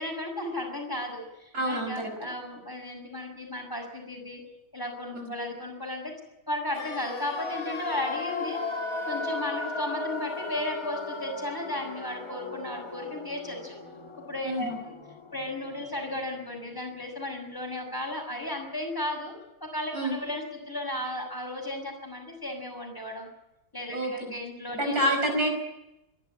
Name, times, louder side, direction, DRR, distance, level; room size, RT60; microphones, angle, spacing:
voice 1, 0.0-4.4 4.7-6.1 6.5-8.6 9.1-13.7 14.2-14.9 15.3-19.3 19.6-23.3 23.7-25.0, left 1 dB, 10° left, 2 dB, 6.3 m, -35 dB
voice 2, 1.5-2.1 5.2-5.3 14.4-14.8 19.9-20.2 23.9-24.1 24.7-25.6, equal, 50° right, 3 dB, 5.6 m, -27 dB
sound 1, 6.7-16.7 16.9-17.0, left 3 dB, 45° left, 3.0 m, -36 dB
26.0 x 12.0 x 9.8 m, 0.91 s
omnidirectional pair, 2.1 m